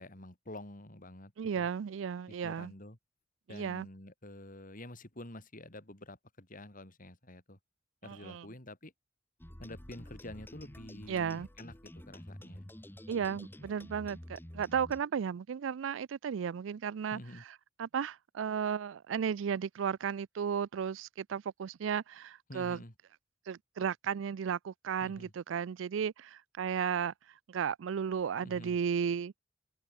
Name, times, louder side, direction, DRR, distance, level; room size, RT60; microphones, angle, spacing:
voice 1, 0.0-1.7 2.3-3.0 3.5-7.6 8.0-8.9 9.6-12.7 17.1-17.4 22.5-22.9 25.0-25.3 28.4-28.8, left 1 dB, 45° left, 4.6 m, -48 dB
voice 2, 1.4-2.7 3.5-3.9 8.0-8.5 11.1-11.5 13.1-17.2 17.8-22.8 23.5-27.1 27.5-29.4, right 7 dB, 90° right, 0.4 m, -34 dB
sound 1, 9.4-15.0, left 1 dB, 10° left, 1.3 m, -49 dB
head